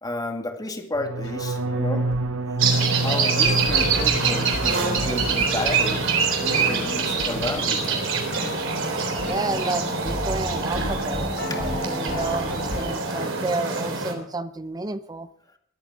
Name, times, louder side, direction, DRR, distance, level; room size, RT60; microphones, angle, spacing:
voice 1, 0.0-2.1 2.6-2.7 3.0-6.0 6.4-8.2 11.5-11.7, left 2 dB, 20° left, 4 dB, 2.3 m, -32 dB
sound 1, 1.0-6.9 7.2-7.7 8.0-8.4, right 2 dB, 85° right, 0.9 m, -29 dB
sound 2, 1.2-12.9, left 1 dB, 60° left, 5.5 m, -35 dB
sound 3, 2.6-14.1, right 5 dB, 65° right, 3.8 m, -25 dB
voice 2, 9.3-11.3 11.6-15.3, right 3 dB, 20° right, 13 dB, 0.6 m, -31 dB
22.5 x 8.6 x 6.1 m, 0.67 s
head